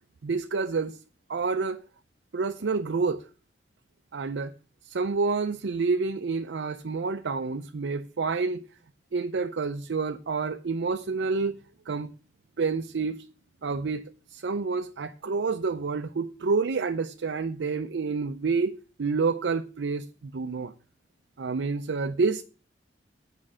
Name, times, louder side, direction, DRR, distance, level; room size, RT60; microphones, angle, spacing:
voice 1, 0.2-1.0 1.3-1.8 2.3-3.2 4.1-4.5 4.8-8.7 9.1-11.6 11.9-12.1 12.6-13.3 13.6-20.7 21.4-22.4, right 4 dB, 90° right, 0.5 m, -28 dB
8.7 x 5.3 x 7.4 m
head